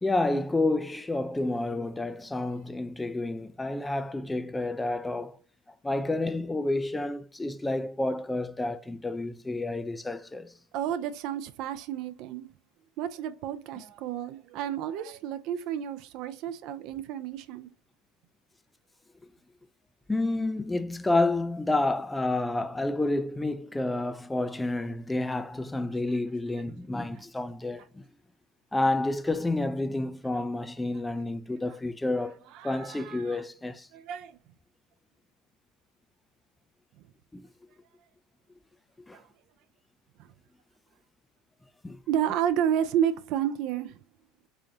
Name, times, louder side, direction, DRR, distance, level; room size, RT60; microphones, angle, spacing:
voice 1, 0.0-5.4 5.8-10.5 20.1-28.0 28.7-33.9 37.3-37.5 39.1-39.2 41.8-42.0, left 2 dB, 10° left, 0.3 m, -29 dB
voice 2, 10.7-12.5 13.0-17.7 32.6-33.4 33.9-34.4 39.1-39.2 42.1-44.0, right 10 dB, 60° right, 0.4 m, -31 dB
3.6 x 3.3 x 2.6 m
supercardioid pair, 105°, 0 cm